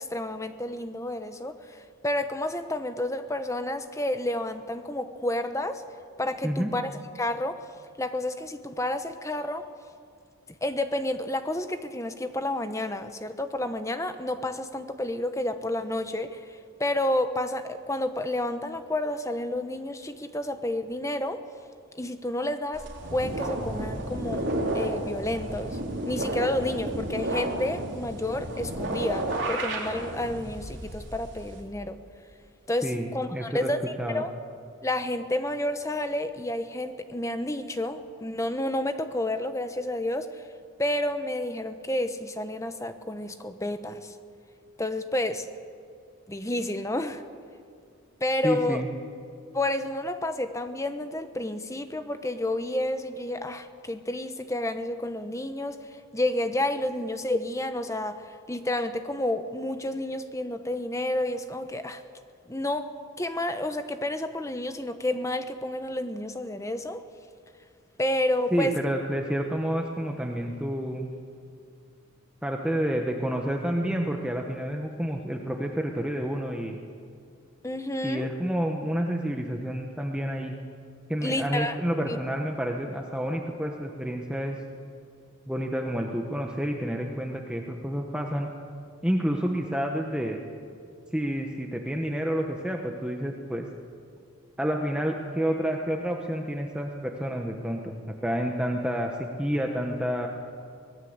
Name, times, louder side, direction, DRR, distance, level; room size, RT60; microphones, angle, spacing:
voice 1, 0.0-5.8 6.2-7.6 8.0-9.7 10.6-21.4 21.9-25.8 26.1-32.0 32.7-33.8 34.1-34.3 34.8-40.4 40.8-44.1 44.8-45.5 46.3-47.2 48.2-48.8 49.5-55.8 56.1-62.0 62.5-67.0 68.0-68.8 77.6-78.3 81.2-81.8 82.1-82.2, left 1 dB, 15° left, 9 dB, 1.0 m, -30 dB
sound 1, 22.7-31.6, right 1 dB, 55° right, 3.9 m, -32 dB
voice 2, 32.8-33.7 34.0-34.2 48.4-48.9 68.5-71.1 72.4-76.8 78.0-80.5 81.1-84.6 85.5-88.5 89.0-90.4 91.1-93.7 94.6-97.9 98.2-100.3, equal, 5° right, 2 dB, 1.2 m, -29 dB
24.5 x 19.0 x 8.1 m, 2.4 s
head